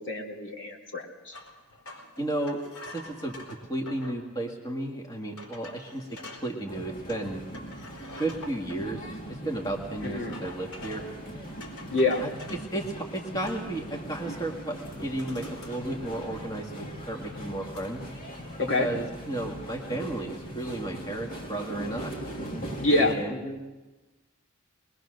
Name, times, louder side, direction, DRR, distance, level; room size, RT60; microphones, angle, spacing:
voice 1, 0.0-1.4 10.0-10.3 11.9-12.2 18.7-18.9 22.8-23.6, left 2 dB, 60° left, -1 dB, 3.1 m, -27 dB
sound 1, 1.3-4.2 4.8-4.9 5.4-6.5 7.1-8.8 10.0-11.2 11.6-12.7 13.2-13.8 14.2-14.4 14.7-16.6 16.9-17.9, left 2 dB, 90° left, 4.4 m, -46 dB
voice 2, 2.2-2.6 2.9-6.1 6.4-7.4 8.2-11.0 12.2-18.0 18.6-22.1 22.9-23.3, right 1 dB, 20° left, 0 dB, 1.9 m, -33 dB
sound 2, 6.7-23.1, right 1 dB, 40° left, 3.1 m, -40 dB
22.5 x 21.0 x 6.5 m, 1.1 s
head